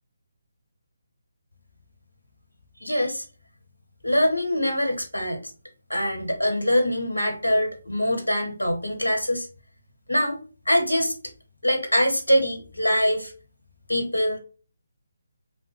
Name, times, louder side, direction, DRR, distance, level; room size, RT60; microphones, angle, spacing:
voice 1, 2.8-3.2 4.0-5.4 5.9-9.5 10.1-10.4 10.7-11.1 11.6-13.3 13.9-14.4, equal, 75° left, 2 dB, 0.9 m, -23 dB
3.0 x 2.1 x 3.1 m, 0.36 s
figure-of-eight pair, 145°, 0 cm